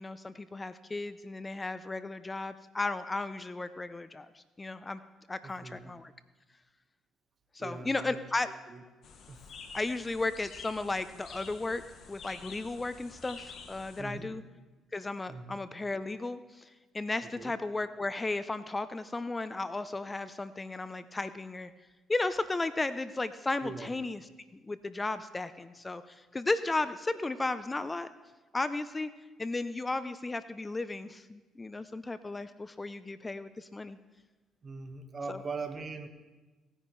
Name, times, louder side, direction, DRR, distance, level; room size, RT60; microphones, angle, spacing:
voice 1, 0.0-5.0 5.3-6.1 7.5-8.5 9.7-11.8 12.1-14.4 14.9-21.7 22.1-24.2 24.5-28.1 28.5-29.1 29.4-34.0 35.3-35.4, left 2 dB, 25° left, 13 dB, 0.6 m, -34 dB
voice 2, 5.4-5.9 7.6-8.2 8.7-8.8 9.3-9.5 14.0-14.4 15.3-15.6 17.3-17.5 23.6-23.9 34.6-36.1, right 4 dB, 45° right, 7 dB, 1.4 m, -41 dB
sound 1, 9.0-14.0, left 5 dB, 60° left, 1.1 m, -48 dB
18.0 x 10.0 x 3.2 m, 1.2 s
hypercardioid pair, 55°, 0 cm